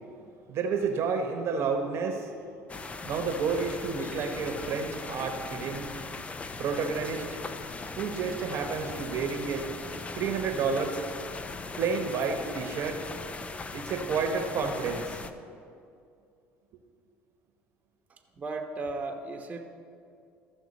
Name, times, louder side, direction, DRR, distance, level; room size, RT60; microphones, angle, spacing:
voice 1, 0.5-2.3 3.0-5.9 6.6-7.4 8.0-9.7 10.1-11.0 11.8-13.0 13.7-15.2, right 5 dB, 55° right, 5 dB, 1.0 m, -30 dB
sound 1, 2.7-15.3, left 3 dB, 25° left, 0.5 m, -39 dB
voice 2, 18.1-19.7, right 3 dB, 25° right, 3 dB, 1.0 m, -36 dB
14.0 x 6.0 x 4.1 m, 2.5 s
supercardioid pair, 90°, 5 cm